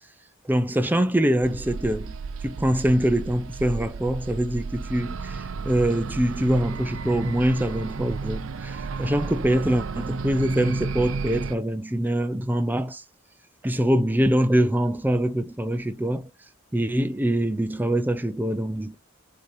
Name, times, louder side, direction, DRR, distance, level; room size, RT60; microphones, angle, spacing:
voice 1, 0.5-2.2 2.4-13.0 13.6-16.3 16.7-19.0, right 1 dB, 10° right, 0.4 m, -24 dB
sound 1, 1.4-11.6, right 4 dB, 80° right, 0.5 m, -33 dB
6.7 x 2.9 x 5.1 m
head